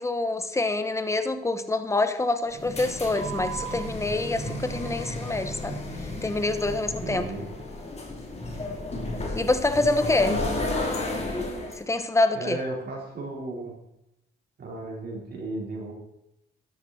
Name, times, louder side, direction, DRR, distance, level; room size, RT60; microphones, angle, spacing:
voice 1, 0.0-5.8 6.2-7.3 9.3-10.4 11.8-12.6, left 2 dB, 15° left, 9 dB, 1.2 m, -26 dB
sound 1, 2.5-11.8, left 1 dB, 35° left, 3.3 m, -32 dB
voice 2, 7.0-7.5 12.3-13.7 14.6-15.9, right 2 dB, 55° right, -2 dB, 4.4 m, -34 dB
13.0 x 12.5 x 4.3 m, 0.87 s
cardioid pair, 90°, 20 cm